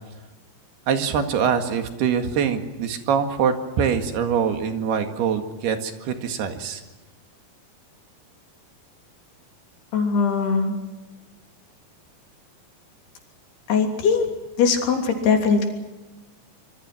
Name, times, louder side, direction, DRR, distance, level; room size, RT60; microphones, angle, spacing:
voice 1, 0.9-6.8, right 7 dB, 85° right, 6 dB, 4.0 m, -24 dB
voice 2, 9.9-10.7 13.7-14.3 14.6-15.7, left 5 dB, 85° left, 3 dB, 5.2 m, -20 dB
26.0 x 24.0 x 6.1 m, 1.2 s
omnidirectional pair, 4.5 m